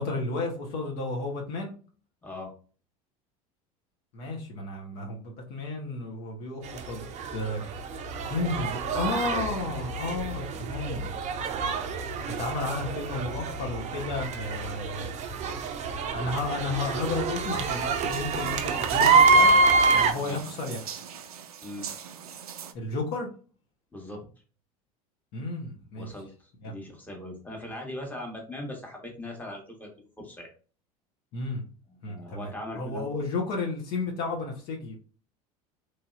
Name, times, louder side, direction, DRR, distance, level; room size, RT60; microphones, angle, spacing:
voice 1, 0.0-1.7 4.1-7.6 8.3-11.1 12.4-15.1 16.1-19.5 19.9-21.0 22.7-23.3 25.3-26.1 26.6-26.7 31.3-31.6 32.0-32.5 32.7-35.0, left 3 dB, 55° left, 0 dB, 0.9 m, -32 dB
voice 2, 2.2-2.5 20.1-20.4 21.6-21.9 23.9-24.2 26.0-30.5 31.9-33.1, left 1 dB, 10° left, 0 dB, 1.2 m, -40 dB
sound 1, 6.6-20.1, right 4 dB, 40° right, 0.5 m, -26 dB
sound 2, 17.4-22.7, right 8 dB, 90° right, 0.4 m, -42 dB
3.2 x 2.7 x 2.4 m, 0.38 s
hypercardioid pair, 80°, 19 cm